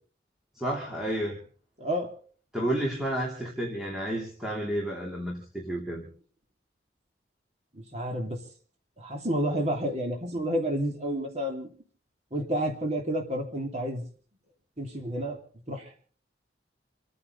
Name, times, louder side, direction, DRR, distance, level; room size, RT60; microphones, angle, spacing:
voice 1, 0.5-1.4 2.5-6.1, right 1 dB, 5° right, -3 dB, 3.1 m, -31 dB
voice 2, 1.8-2.1 7.7-8.4 9.0-11.7 12.3-14.0 14.8-15.4 15.7-16.0, equal, 40° right, 1 dB, 2.8 m, -30 dB
29.5 x 9.8 x 4.0 m, 0.43 s
head